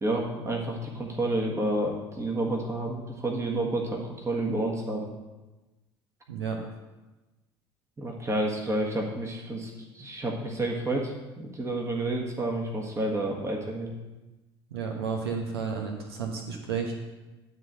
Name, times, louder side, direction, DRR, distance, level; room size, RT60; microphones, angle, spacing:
voice 1, 0.0-5.1 8.0-13.9, right 1 dB, 20° right, 0 dB, 1.7 m, -30 dB
voice 2, 6.3-6.6 14.7-16.9, right 5 dB, 75° right, 2 dB, 1.1 m, -32 dB
10.5 x 3.8 x 7.5 m, 1.1 s
figure-of-eight pair, 60°, 13 cm